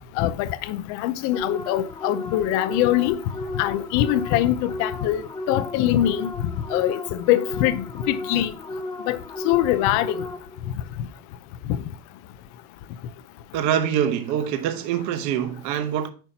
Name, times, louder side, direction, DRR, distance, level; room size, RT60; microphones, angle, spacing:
voice 1, 0.2-3.2 3.5-8.5 9.1-9.2 9.4-10.2, left 13 dB, 55° left, 0.6 m, -23 dB
sound 1, 1.3-10.7, left 1 dB, 10° left, 0.5 m, -34 dB
voice 2, 13.5-16.1, right 9 dB, 55° right, 0.9 m, -24 dB
8.9 x 5.6 x 2.8 m
cardioid pair, 180°, 35 cm